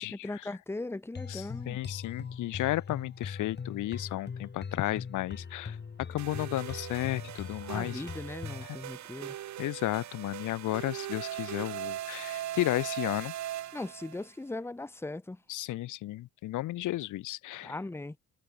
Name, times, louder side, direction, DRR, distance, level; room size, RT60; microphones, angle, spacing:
voice 1, 0.0-1.8 7.6-9.4 13.7-15.4 17.6-18.2, left 2 dB, 10° left, 1.0 m, -39 dB
sound 1, 1.1-8.7, left 6 dB, 35° left, 2.2 m, -41 dB
voice 2, 1.3-8.0 9.6-13.3 15.5-17.7, left 16 dB, 80° left, 1.1 m, -33 dB
sound 2, 2.2-16.3, right 14 dB, 85° right, 7.1 m, -68 dB
sound 3, 6.2-14.3, right 12 dB, 65° right, 1.3 m, -40 dB
open air
cardioid pair, 90°, 30 cm